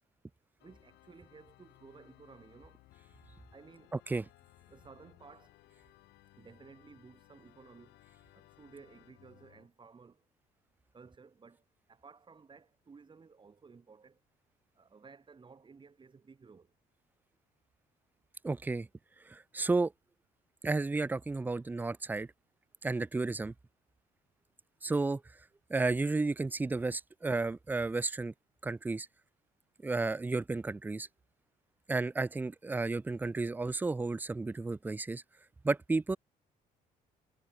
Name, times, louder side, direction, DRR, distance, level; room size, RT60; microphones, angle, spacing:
Organ, 0.6-9.7, left 17 dB, 85° left, 6.8 m, -62 dB
voice 1, 0.6-2.8 3.5-4.3 4.7-5.5 6.4-8.0 8.3-10.2 10.9-14.2 14.8-16.7, right 5 dB, 30° right, 6.9 m, -56 dB
voice 2, 18.4-18.9 19.3-19.9 20.6-22.3 22.8-23.5 24.8-25.2 25.7-28.3 28.6-29.1 29.8-31.1 31.9-35.2 35.6-36.2, right 3 dB, 10° right, 0.4 m, -32 dB
cardioid pair, 110°, 17 cm